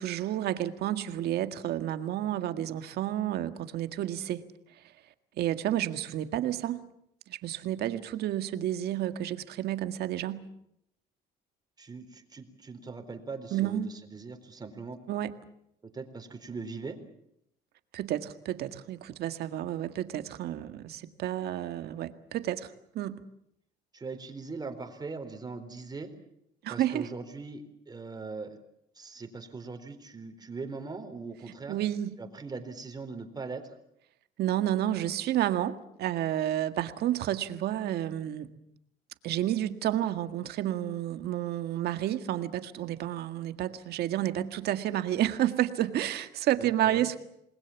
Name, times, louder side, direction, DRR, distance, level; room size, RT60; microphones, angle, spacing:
voice 1, 0.0-4.4 5.4-6.8 7.3-10.4 13.5-13.9 15.1-15.4 17.9-22.7 23.0-23.2 26.6-27.1 31.7-32.1 34.4-38.5 39.2-47.2, right 12 dB, 70° right, 9 dB, 1.8 m, -30 dB
voice 2, 11.8-15.0 15.8-17.0 23.9-26.1 26.7-28.6 29.0-31.8 32.2-33.8 46.6-47.1, right 4 dB, 25° right, 7 dB, 4.0 m, -40 dB
28.0 x 21.0 x 7.2 m, 0.75 s
cardioid pair, 110°, 17 cm